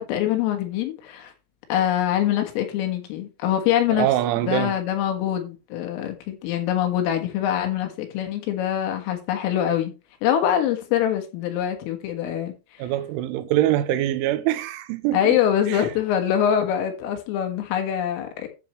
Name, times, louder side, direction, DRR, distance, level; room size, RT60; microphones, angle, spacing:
voice 1, 0.0-1.3 1.7-4.1 4.4-9.9 10.2-12.5 15.1-18.5, left 10 dB, 85° left, 4.1 m, -24 dB
voice 2, 3.9-4.8 12.8-15.4 15.7-15.9, right 13 dB, 80° right, 3.0 m, -24 dB
11.5 x 6.9 x 3.1 m
omnidirectional pair, 5.7 m